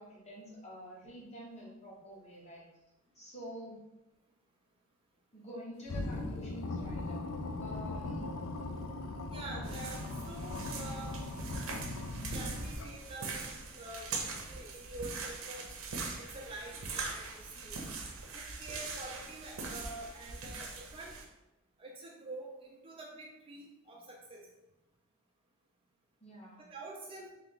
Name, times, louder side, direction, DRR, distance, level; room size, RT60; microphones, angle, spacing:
voice 1, 0.0-2.7 3.1-3.8 5.3-7.2 7.6-8.4 26.2-26.7, equal, 35° left, -5 dB, 1.1 m, -47 dB
sound 1, 5.9-13.1, left 2 dB, 85° left, 0.5 m, -39 dB
voice 2, 9.3-11.1 11.5-11.7 12.3-15.7 16.2-17.8 18.3-21.1 21.8-24.5 26.7-27.3, right 2 dB, 25° right, -2 dB, 0.5 m, -47 dB
sound 2, 9.6-21.2, right 4 dB, 85° right, 0.6 m, -42 dB
3.3 x 2.9 x 3.7 m, 0.97 s
head